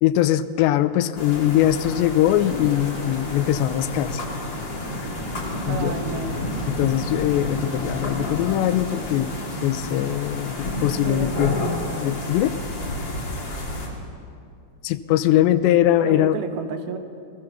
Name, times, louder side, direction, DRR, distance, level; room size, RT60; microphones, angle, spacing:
voice 1, 0.0-4.3 5.7-6.0 6.7-9.4 9.6-11.6 12.0-12.6 14.8-16.4, left 12 dB, 90° left, 13 dB, 3.0 m, -21 dB
sound 1, 1.2-13.9, left 1 dB, 30° left, 3.1 m, -30 dB
voice 2, 5.7-6.4 11.0-11.3 16.0-17.0, right 5 dB, 70° right, 7 dB, 3.1 m, -31 dB
29.0 x 19.5 x 7.0 m, 2.5 s
omnidirectional pair, 4.9 m